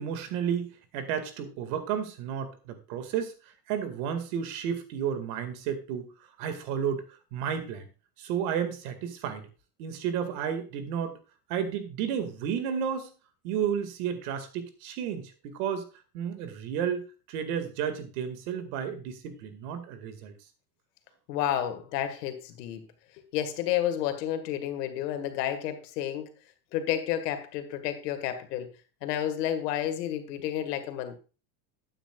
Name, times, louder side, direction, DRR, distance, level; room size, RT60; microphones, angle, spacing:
voice 1, 0.0-3.3 3.7-6.1 6.4-7.0 7.3-7.9 8.2-9.5 9.8-11.2 11.5-13.1 13.4-15.9 16.1-20.3, right 8 dB, 70° right, 9 dB, 2.2 m, -32 dB
voice 2, 21.3-22.8 23.3-26.3 26.7-28.7 29.0-31.2, left 11 dB, 80° left, 8 dB, 2.0 m, -30 dB
12.5 x 9.0 x 2.4 m, 0.34 s
supercardioid pair, 135°, 47 cm